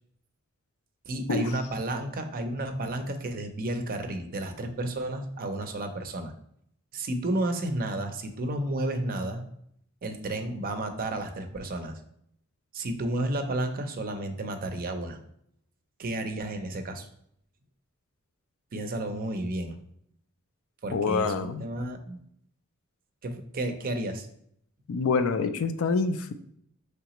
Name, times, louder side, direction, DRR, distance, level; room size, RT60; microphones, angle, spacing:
voice 1, 1.1-6.3 6.9-9.4 10.0-12.0 12.7-15.2 16.0-17.1 18.7-19.8 20.8-22.2 23.2-24.3, right 1 dB, 45° right, 7 dB, 0.5 m, -32 dB
voice 2, 20.9-21.7 24.9-26.3, left 4 dB, 70° left, 10 dB, 0.4 m, -26 dB
4.8 x 3.3 x 2.9 m, 0.69 s
head